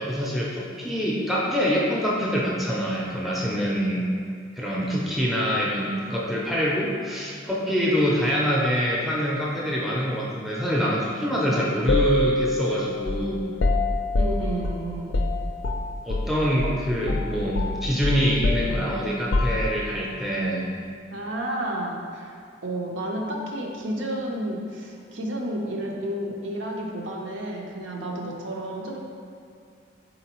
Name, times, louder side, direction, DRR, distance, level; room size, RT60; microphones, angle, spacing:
voice 1, 0.0-4.0 4.6-13.4 16.1-20.6, equal, ahead, -5 dB, 0.5 m, -25 dB
sound 1, 11.9-16.3 16.6-16.8 17.1-20.0, left 2 dB, 70° left, 0.4 m, -25 dB
voice 2, 14.1-15.2 21.1-29.0, right 1 dB, 80° right, -1 dB, 0.6 m, -31 dB
4.2 x 3.9 x 3.0 m, 2.4 s
head